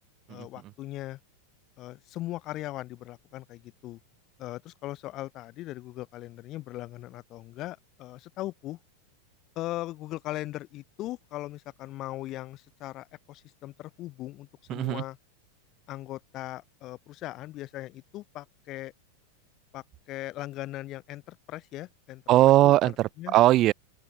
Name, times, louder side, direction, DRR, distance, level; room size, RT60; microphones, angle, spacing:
voice 1, 0.3-1.2 1.8-4.0 4.4-8.8 9.6-15.2 15.9-18.9 19.7-22.2 22.6-22.9 23.2-23.4, left 16 dB, 35° left, 7.7 m, -39 dB
voice 2, 14.7-15.0 22.3-23.7, right 15 dB, 35° right, 1.9 m, -20 dB
open air
figure-of-eight pair, 90°, 0 cm